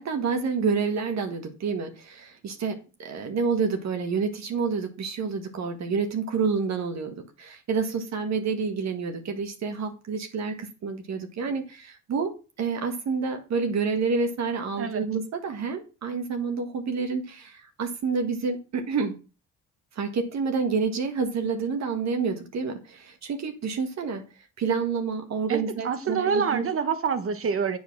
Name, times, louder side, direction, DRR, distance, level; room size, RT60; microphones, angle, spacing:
voice 1, 0.0-19.1 19.9-24.2 24.6-26.7, right 5 dB, 60° right, 1.6 m, -28 dB
voice 2, 25.5-27.8, right 6 dB, 45° right, 1.3 m, -27 dB
8.2 x 4.7 x 6.1 m
cardioid pair, 90°, 30 cm